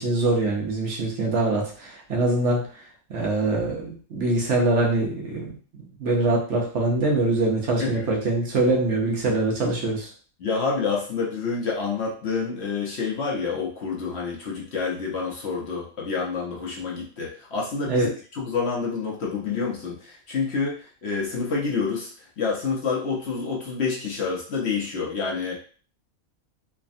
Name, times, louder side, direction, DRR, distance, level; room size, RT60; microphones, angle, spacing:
voice 1, 0.0-2.6 3.1-10.1 17.9-18.1, right 2 dB, 65° right, -2 dB, 1.0 m, -24 dB
voice 2, 7.8-8.1 10.4-22.1 22.4-25.6, left 5 dB, 60° left, -3 dB, 0.8 m, -28 dB
3.2 x 2.1 x 2.5 m, 0.42 s
omnidirectional pair, 1.5 m